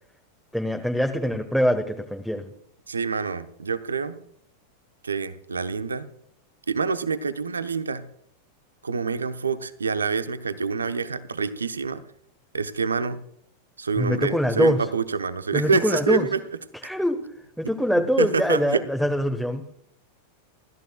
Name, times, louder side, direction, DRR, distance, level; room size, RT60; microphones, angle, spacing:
voice 1, 0.5-2.5 14.0-14.9 15.5-16.3 16.8-17.3 17.6-19.7, equal, ahead, 6 dB, 1.2 m, -23 dB
voice 2, 2.9-4.2 5.0-6.1 6.7-8.0 8.8-12.0 12.5-13.2 13.8-16.4 18.2-18.9, right 5 dB, 75° right, 11 dB, 0.9 m, -26 dB
30.0 x 14.0 x 2.3 m, 0.70 s
figure-of-eight pair, 90°, 0 cm